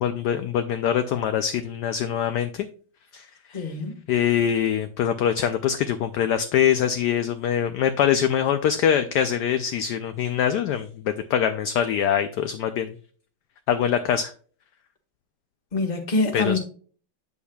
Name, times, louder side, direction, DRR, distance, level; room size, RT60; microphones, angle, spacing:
voice 1, 0.0-2.7 3.1-3.6 4.1-12.9 13.7-14.3 16.3-16.6, left 9 dB, 75° left, 0.9 m, -23 dB
voice 2, 3.5-4.0 15.7-16.6, left 3 dB, 25° left, 1.1 m, -25 dB
8.2 x 7.1 x 2.3 m
omnidirectional pair, 2.3 m